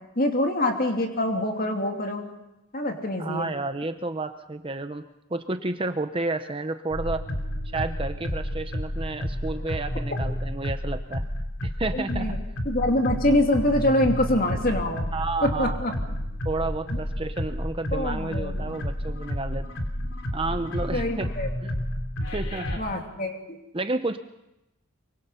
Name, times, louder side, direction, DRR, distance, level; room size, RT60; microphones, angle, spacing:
voice 1, 0.2-2.3 2.7-3.5 11.9-12.4 12.6-15.1 15.4-15.9 17.9-18.8 20.9-21.5 22.8-23.6, left 1 dB, 40° left, 3 dB, 2.8 m, -25 dB
voice 2, 3.2-5.0 5.3-7.2 7.7-11.2 11.6-12.4 15.1-15.8 16.4-19.7 20.3-21.3 21.6-21.7 22.3-22.8 23.7-24.2, right 2 dB, 25° right, 8 dB, 0.7 m, -31 dB
sound 1, 6.9-22.8, equal, 65° left, 3.1 m, -31 dB
24.0 x 24.0 x 5.7 m, 0.92 s
head